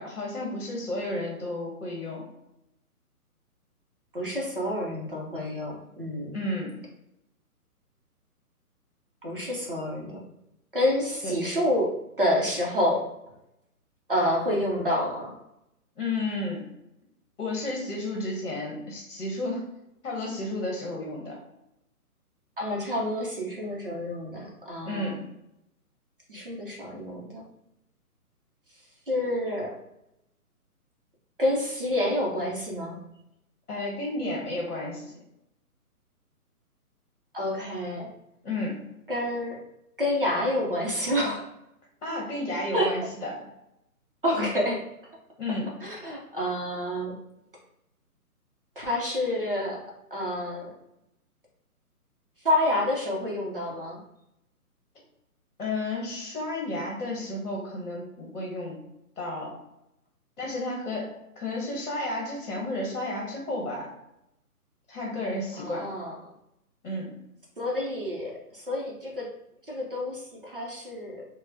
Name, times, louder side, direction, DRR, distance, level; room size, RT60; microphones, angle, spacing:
voice 1, 0.0-2.2 6.3-6.8 11.2-11.3 16.0-16.6 17.4-19.6 20.0-21.4 24.8-25.2 33.7-35.2 38.4-38.8 42.0-43.3 45.4-45.7 55.6-58.8 59.2-59.5 60.4-63.9 64.9-65.9 66.8-67.1, left 2 dB, 55° left, -2 dB, 1.0 m, -32 dB
voice 2, 4.1-6.4 9.2-10.2 10.7-13.0 14.1-15.3 22.6-25.2 26.3-27.4 29.1-29.8 31.4-33.0 37.3-38.1 39.1-39.6 40.0-41.5 42.7-43.0 44.2-44.8 45.8-47.2 48.8-49.8 50.1-50.7 52.4-54.0 65.6-66.2 67.6-69.3 69.7-71.2, left 1 dB, 40° right, -3 dB, 0.6 m, -28 dB
3.9 x 2.1 x 2.6 m, 0.85 s
hypercardioid pair, 175°, 45 cm